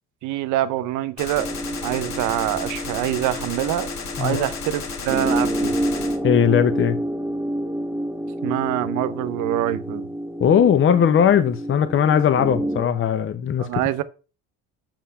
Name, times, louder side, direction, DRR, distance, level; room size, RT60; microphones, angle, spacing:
voice 1, 0.2-1.5 1.8-3.9 4.2-5.8 8.4-10.1 13.6-14.0, right 13 dB, 80° right, 0.8 m, -25 dB
Gunshot gunfire, 1.2-6.2, left 5 dB, 65° left, 2.0 m, -34 dB
sound 1, 1.4-12.8, right 1 dB, 5° right, 1.9 m, -28 dB
voice 2, 6.2-7.0 10.4-13.8, left 8 dB, 40° left, 0.8 m, -19 dB
6.9 x 5.7 x 5.6 m
supercardioid pair, 85°, 30 cm